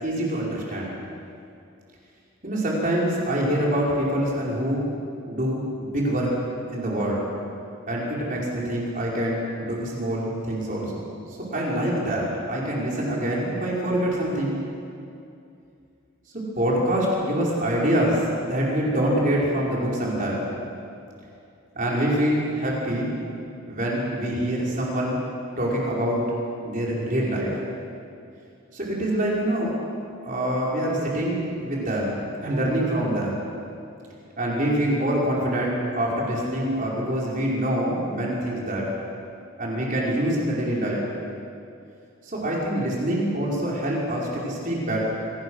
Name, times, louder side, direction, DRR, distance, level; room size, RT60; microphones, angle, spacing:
voice 1, 0.0-0.9 2.4-4.8 5.3-6.3 6.7-7.2 7.9-14.6 16.5-20.5 21.7-23.1 23.7-25.2 25.6-26.2 26.6-27.5 28.7-29.7 30.2-33.4 34.4-38.9 39.6-41.0 42.2-45.1, right 1 dB, 40° right, -4 dB, 5.0 m, -25 dB
25.0 x 17.5 x 6.5 m, 2.5 s
head